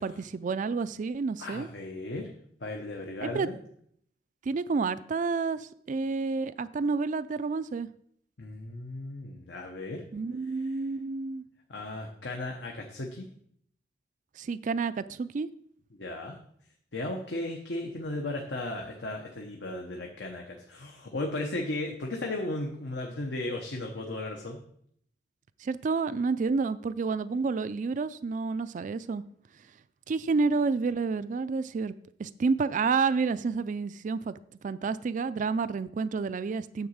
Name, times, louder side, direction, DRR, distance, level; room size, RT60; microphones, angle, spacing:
voice 1, 0.0-1.7 3.2-3.5 4.5-7.9 10.1-11.4 14.4-15.5 25.6-29.2 30.1-31.9 32.2-34.3 34.6-36.9, right 4 dB, 45° right, 15 dB, 0.3 m, -29 dB
voice 2, 1.4-2.3 2.6-3.6 8.4-10.0 10.6-10.8 11.7-13.3 16.0-16.4 16.9-24.6, left 2 dB, 75° left, 1 dB, 1.0 m, -36 dB
9.5 x 4.0 x 7.1 m, 0.66 s
head